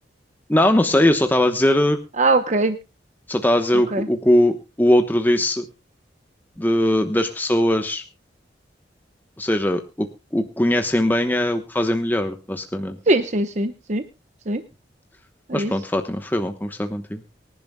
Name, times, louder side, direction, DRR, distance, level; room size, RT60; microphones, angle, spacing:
voice 1, 0.5-2.0 3.3-5.6 6.6-8.0 9.4-13.0 15.5-17.2, left 1 dB, 10° left, 6 dB, 1.0 m, -20 dB
voice 2, 2.2-2.8 3.9-4.1 13.1-14.0 14.5-14.6 15.5-15.7, right 2 dB, 40° right, 9 dB, 0.9 m, -21 dB
24.5 x 11.0 x 2.2 m, 0.28 s
head